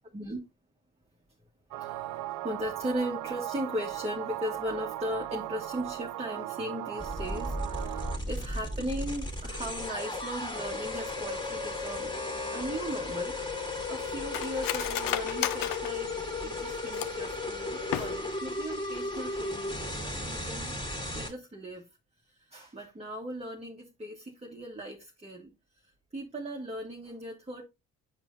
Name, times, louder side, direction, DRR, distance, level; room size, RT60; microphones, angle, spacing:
sound 1, 1.7-8.2, right 14 dB, 65° right, 0.5 m, -37 dB
voice 1, 1.8-12.1 12.5-16.1 16.4-20.7 21.1-21.9 22.3-25.5 25.8-27.6, equal, 15° right, 1.2 m, -38 dB
sound 2, 7.0-21.3, left 2 dB, 10° left, 2.0 m, -35 dB
Cutlery silverware, 12.9-17.3 17.8-18.5 18.8-18.9 19.2-19.6 19.9-20.1, left 12 dB, 65° left, 0.6 m, -35 dB
8.2 x 4.8 x 2.5 m
supercardioid pair, 60°, 36 cm